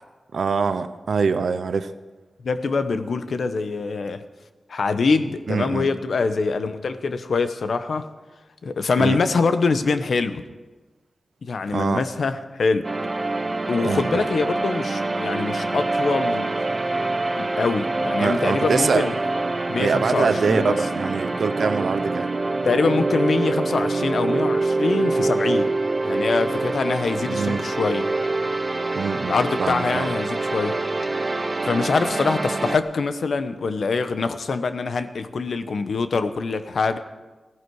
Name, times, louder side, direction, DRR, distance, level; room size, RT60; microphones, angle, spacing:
voice 1, 0.3-1.9 5.5-5.9 9.0-9.2 11.7-12.1 13.8-14.3 18.2-19.1 19.8-22.3 27.3-27.6 28.9-30.1, right 5 dB, 80° right, 11 dB, 0.8 m, -24 dB
voice 2, 2.4-4.2 4.7-8.1 8.6-10.4 11.4-12.9 13.7-16.6 17.4-19.1 19.7-20.8 22.6-25.7 26.0-28.1 29.3-30.8 31.6-37.0, left 4 dB, 75° left, 10 dB, 0.9 m, -24 dB
sound 1, 12.8-32.8, right 2 dB, 30° right, 0.7 m, -25 dB
16.0 x 15.0 x 4.8 m, 1.2 s
wide cardioid pair, 135°, 0 cm